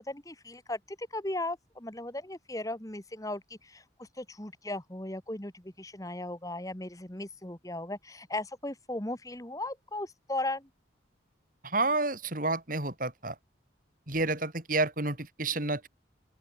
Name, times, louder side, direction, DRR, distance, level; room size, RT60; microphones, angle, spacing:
voice 1, 0.0-10.7, left 1 dB, 20° left, 2.2 m, -37 dB
voice 2, 11.6-13.3 14.1-15.9, right 2 dB, 45° right, 4.7 m, -30 dB
open air
head